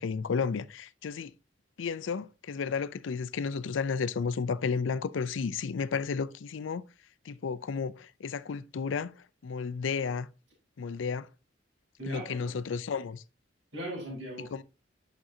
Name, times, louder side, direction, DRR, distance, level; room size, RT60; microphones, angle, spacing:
voice 1, 0.0-1.3 1.8-6.8 7.3-9.2 9.4-10.3 10.8-11.3 12.1-13.2 14.5-14.6, left 5 dB, 75° left, 0.4 m, -32 dB
voice 2, 12.0-12.5 13.7-14.6, right 1 dB, 75° right, 3.9 m, -39 dB
8.8 x 6.1 x 2.7 m
head